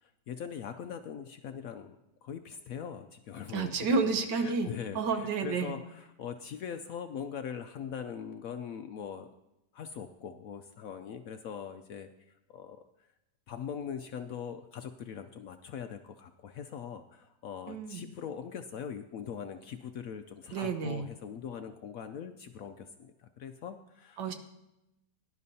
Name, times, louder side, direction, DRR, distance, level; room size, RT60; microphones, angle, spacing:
voice 1, 0.0-2.0 2.2-4.1 4.4-9.3 9.7-12.1 12.5-12.8 13.5-24.2, left 7 dB, 70° left, 8 dB, 0.8 m, -41 dB
voice 2, 3.5-4.7 5.0-5.7 17.7-18.0 20.5-21.1 24.2-24.3, right 4 dB, 80° right, 7 dB, 1.7 m, -30 dB
17.5 x 11.0 x 2.7 m, 0.90 s
omnidirectional pair, 1.9 m